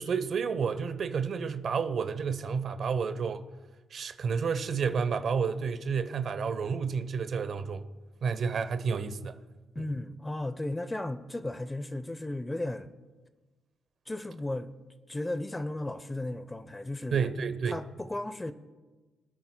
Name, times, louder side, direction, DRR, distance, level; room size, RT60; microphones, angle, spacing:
voice 1, 0.0-3.4 3.9-7.8 8.2-9.4 9.8-9.9 17.1-17.8, right 6 dB, 60° right, 0.8 m, -30 dB
voice 2, 9.7-12.9 14.1-14.7 15.1-17.3 17.7-18.5, left 1 dB, 15° left, 0.6 m, -35 dB
25.0 x 9.4 x 2.2 m
cardioid pair, 80°, 0 cm